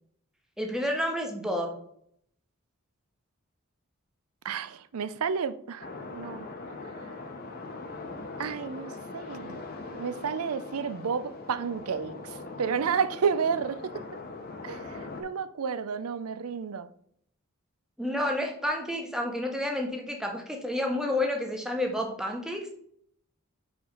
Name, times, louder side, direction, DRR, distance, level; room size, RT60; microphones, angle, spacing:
voice 1, 0.6-1.8 18.0-22.7, left 1 dB, 5° right, 0.9 m, -30 dB
voice 2, 4.4-6.5 7.0-7.1 8.4-9.6 10.0-14.0 14.6-16.9, right 6 dB, 85° right, 0.5 m, -31 dB
sound 1, 5.8-15.2, left 3 dB, 45° left, 0.9 m, -41 dB
5.0 x 4.8 x 5.3 m
head